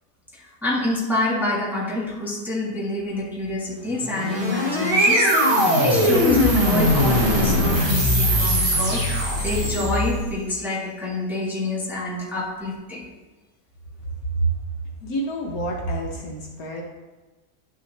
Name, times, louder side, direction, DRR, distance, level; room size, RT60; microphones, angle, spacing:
voice 1, 0.3-13.1, left 2 dB, ahead, -5 dB, 1.4 m, -27 dB
sound 1, 4.0-10.3, equal, 30° right, 1.6 m, -20 dB
voice 2, 15.0-16.8, right 2 dB, 60° left, 0 dB, 1.4 m, -27 dB
10.5 x 6.1 x 3.3 m, 1.2 s
omnidirectional pair, 1.8 m